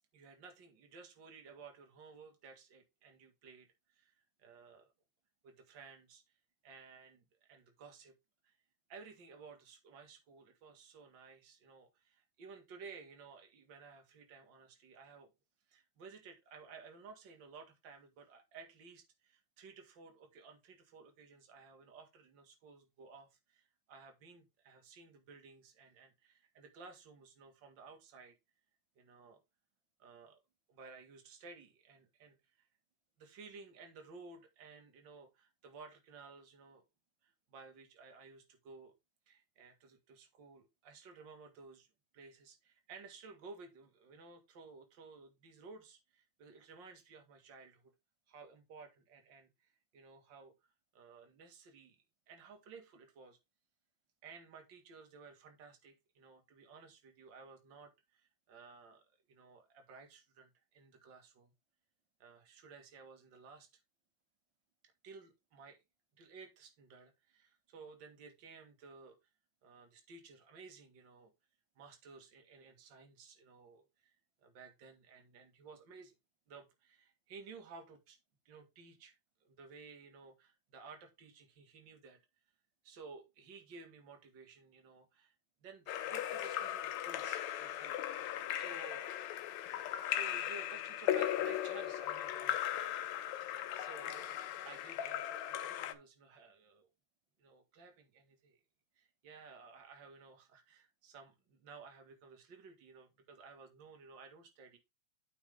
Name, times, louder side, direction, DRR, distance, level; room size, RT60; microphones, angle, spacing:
voice 1, 0.1-4.9 5.4-6.2 6.6-8.2 8.4-8.6 8.9-15.3 15.7-28.3 29.0-29.4 30.0-30.4 30.7-32.7 33.2-36.9 37.2-38.9 39.3-41.9 42.1-47.9 48.3-50.5 50.9-52.0 52.3-53.4 54.2-61.5 62.2-63.8 65.0-65.8 66.2-69.2 69.6-71.3 71.8-76.2 76.5-78.2 78.5-79.2 79.4-82.2 82.8-85.4 85.6-89.2 90.0-92.8 93.7-96.9 97.4-98.6 99.0-104.8, right 4 dB, 45° right, 2.1 m, -55 dB
Splash splatter / Drip / Trickle dribble, 85.9-95.9, left 12 dB, 75° left, 2.0 m, -38 dB
8.6 x 5.4 x 3.5 m
omnidirectional pair, 3.3 m